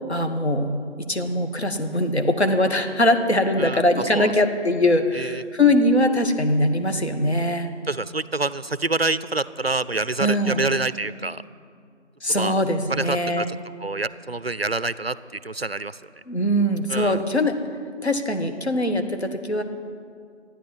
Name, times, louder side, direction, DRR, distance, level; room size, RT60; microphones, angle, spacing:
voice 1, 0.1-7.7 10.2-10.6 12.2-13.5 16.3-17.6 18.0-19.6, left 1 dB, 65° left, 6 dB, 1.6 m, -22 dB
voice 2, 3.6-4.3 5.1-5.4 7.9-11.4 12.3-12.6 12.9-16.0 16.9-17.2, right 3 dB, 55° right, 16 dB, 0.5 m, -27 dB
13.5 x 10.0 x 9.2 m, 2.3 s
figure-of-eight pair, 175°, 36 cm